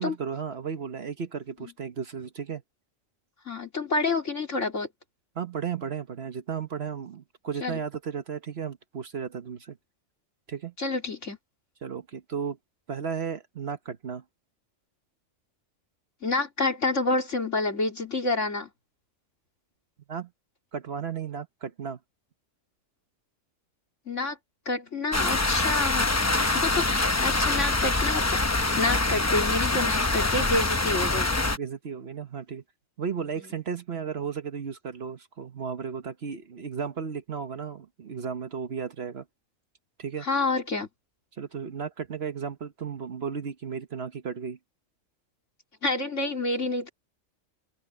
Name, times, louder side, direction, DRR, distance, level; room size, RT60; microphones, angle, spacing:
voice 1, 0.0-2.6 5.3-9.8 10.5-10.7 11.8-12.6 12.9-14.2 20.1-20.3 20.7-22.0 31.5-32.6 33.0-39.2 40.0-40.3 41.4-44.6, right 6 dB, 50° right, 1.3 m, -34 dB
voice 2, 3.5-4.9 7.6-7.8 10.8-11.4 16.2-18.7 24.1-24.4 24.7-31.3 33.4-33.5 40.2-40.9 45.8-46.9, left 3 dB, 65° left, 3.8 m, -28 dB
sound 1, 25.1-31.6, left 2 dB, 15° left, 0.6 m, -25 dB
omnidirectional pair, 1.4 m